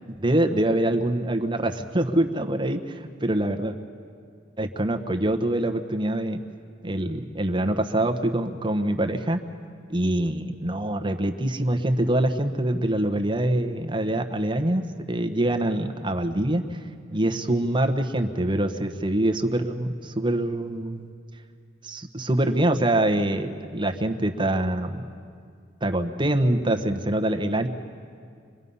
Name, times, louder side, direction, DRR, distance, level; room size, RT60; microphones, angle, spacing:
voice 1, 0.2-3.7 4.6-6.4 6.8-9.4 9.9-16.8 17.1-21.1 21.8-25.0 25.8-27.7, right 1 dB, 25° right, 5 dB, 1.1 m, -25 dB
27.0 x 22.0 x 5.6 m, 2.3 s
head